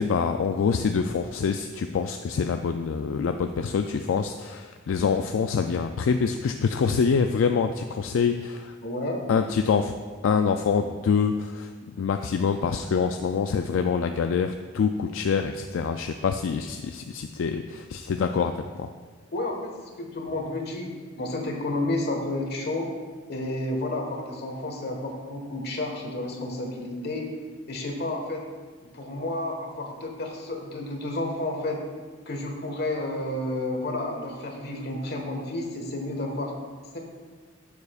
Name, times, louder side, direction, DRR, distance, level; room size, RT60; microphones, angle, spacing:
voice 1, 0.0-8.7 9.3-9.9 10.2-11.7 12.0-18.9, left 6 dB, 75° left, 6 dB, 0.3 m, -25 dB
voice 2, 8.8-9.2 19.3-19.7 20.0-20.9 21.2-22.9 23.3-27.2 27.7-28.4 28.9-31.8 32.2-36.5 36.9-37.0, left 1 dB, 55° left, 1 dB, 1.4 m, -31 dB
11.5 x 6.8 x 2.4 m, 1.5 s
head